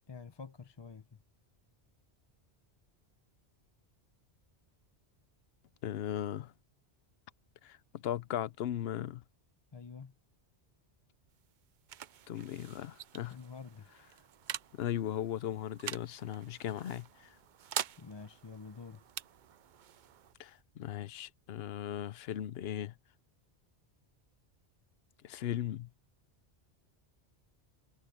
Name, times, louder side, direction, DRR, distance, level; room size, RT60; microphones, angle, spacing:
voice 1, 0.1-1.2 9.7-10.1 13.3-13.9 18.0-19.0, left 5 dB, 30° left, 0.6 m, -48 dB
voice 2, 5.8-6.5 7.6-9.2 12.3-13.4 14.7-17.4 20.4-22.9 25.2-25.9, left 11 dB, 65° left, 0.8 m, -37 dB
sound 1, 11.1-22.5, right 10 dB, 55° right, 0.6 m, -46 dB
omnidirectional pair, 1.1 m